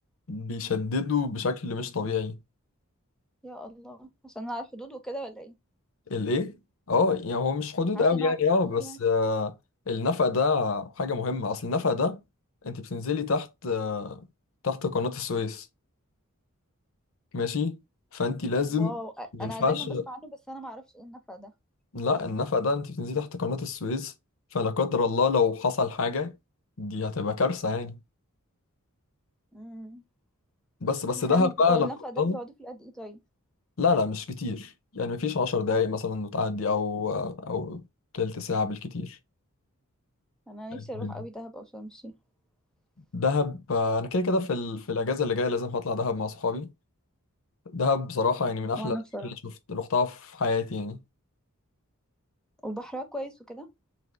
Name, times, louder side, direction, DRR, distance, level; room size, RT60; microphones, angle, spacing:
voice 1, 0.3-2.4 6.1-6.6 6.9-9.5 9.9-12.2 12.6-14.2 14.6-15.7 17.3-17.8 18.1-18.9 19.3-20.0 21.9-24.1 24.5-26.3 26.8-28.0 30.8-31.9 32.2-32.4 33.8-37.8 38.1-39.2 40.7-41.1 43.1-46.7 47.7-49.0 49.7-51.0, left 4 dB, 65° left, 0.6 m, -27 dB
voice 2, 3.4-5.5 7.9-8.4 8.6-9.0 18.7-21.5 29.5-30.0 31.2-33.2 40.5-42.1 48.8-49.3 52.6-53.7, right 1 dB, 5° left, 0.5 m, -38 dB
3.3 x 2.8 x 3.7 m
head